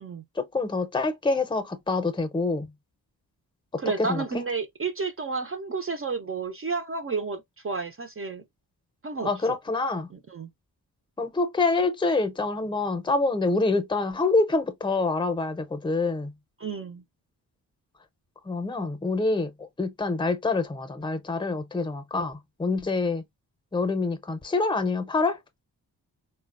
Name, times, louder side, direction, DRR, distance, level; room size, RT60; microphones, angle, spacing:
voice 1, 0.4-2.7 3.7-4.2 9.2-10.1 11.2-16.3 18.5-23.2 23.7-25.4, left 3 dB, 10° left, 0.6 m, -26 dB
voice 2, 3.8-8.4 9.0-9.6 10.3-10.5 16.6-17.0, right 4 dB, 35° right, 0.4 m, -31 dB
3.8 x 2.1 x 2.4 m
cardioid pair, 60°, 41 cm